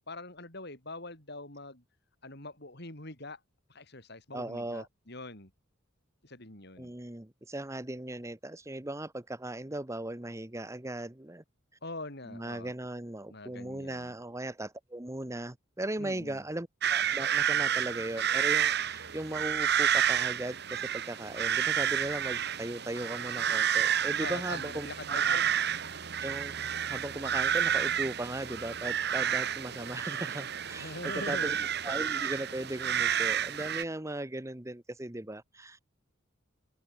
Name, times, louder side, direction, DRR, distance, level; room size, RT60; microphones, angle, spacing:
voice 1, 0.0-1.8 2.2-3.4 3.7-5.5 6.2-6.9 11.8-12.7 13.3-14.1 16.0-16.4 24.2-25.5 30.8-31.6, left 2 dB, 55° left, 7.0 m, -43 dB
voice 2, 4.3-4.9 6.8-11.4 12.2-25.4 26.2-35.8, right 1 dB, 15° right, 1.0 m, -38 dB
sound 1, 16.8-33.8, right 9 dB, 55° right, 1.5 m, -30 dB
open air
head